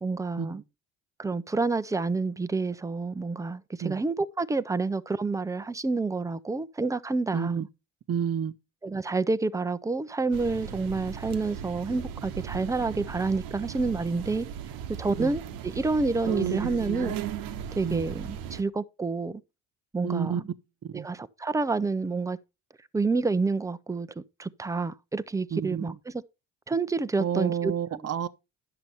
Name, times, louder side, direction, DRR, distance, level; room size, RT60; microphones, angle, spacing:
voice 1, 0.0-0.6 1.2-7.7 8.8-14.5 15.0-17.2 17.8-19.4 19.9-20.5 20.9-22.4 22.9-26.2 26.7-28.0, right 3 dB, 10° right, 0.6 m, -29 dB
voice 2, 7.3-7.7 8.1-8.5 15.2-15.3 17.8-18.0 20.0-20.4 20.8-21.1 25.5-25.9 27.2-28.3, right 8 dB, 45° right, 0.9 m, -30 dB
sound 1, 10.3-18.6, right 9 dB, 80° right, 1.0 m, -36 dB
10.5 x 6.8 x 4.3 m
supercardioid pair, 85°, 35 cm